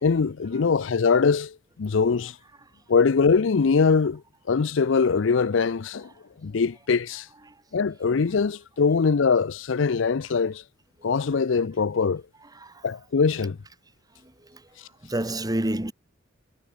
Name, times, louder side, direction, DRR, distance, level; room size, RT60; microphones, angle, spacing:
voice 1, 0.0-2.4 2.9-4.2 4.5-6.1 6.4-7.3 7.7-10.6 11.0-12.2 12.8-13.6, left 5 dB, 70° left, 0.5 m, -22 dB
voice 2, 15.0-15.9, right 1 dB, 20° right, 1.6 m, -28 dB
head